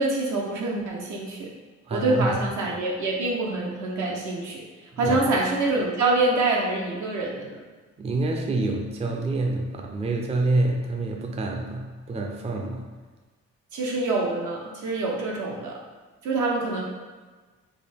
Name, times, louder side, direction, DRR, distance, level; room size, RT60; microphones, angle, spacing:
voice 1, 0.0-1.5 1.9-4.6 5.0-7.6 13.7-15.7 16.2-16.8, right 2 dB, 75° right, -2 dB, 0.9 m, -25 dB
voice 2, 1.9-2.4 4.9-5.2 8.0-12.9, right 2 dB, 20° right, 0 dB, 0.4 m, -27 dB
3.8 x 2.2 x 3.4 m, 1.4 s
cardioid pair, 90°, 30 cm